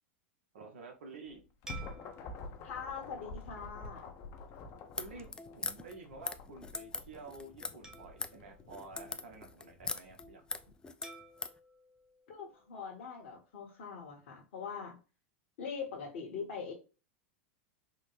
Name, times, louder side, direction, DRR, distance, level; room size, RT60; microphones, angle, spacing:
voice 1, 0.5-1.4 5.0-5.3 5.5-10.4 10.7-10.8, right 3 dB, 75° right, 3 dB, 0.8 m, -50 dB
sound 1, 1.3-10.7, left 3 dB, 45° left, 0.7 m, -49 dB
sound 2, 1.7-4.3 4.9-5.1 7.8-9.6 11.0-13.3, right 3 dB, 10° right, 0.8 m, -55 dB
voice 2, 2.6-4.1 12.3-15.0 15.6-16.7, left 6 dB, 65° left, -2 dB, 1.1 m, -42 dB
sound 3, 4.9-11.6, left 4 dB, 10° left, 0.3 m, -41 dB
3.6 x 2.1 x 3.1 m, 0.32 s
hypercardioid pair, 100°, 7 cm